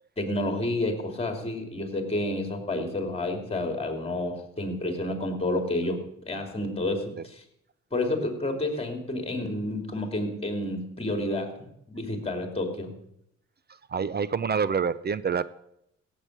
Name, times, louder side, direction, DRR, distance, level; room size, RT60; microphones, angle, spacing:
voice 1, 0.2-7.4 7.9-11.5 11.9-12.9, left 1 dB, 20° left, 4 dB, 2.9 m, -30 dB
voice 2, 13.7-15.5, right 6 dB, 35° right, 17 dB, 0.6 m, -27 dB
16.5 x 8.3 x 6.6 m, 0.77 s
cardioid pair, 90°, 30 cm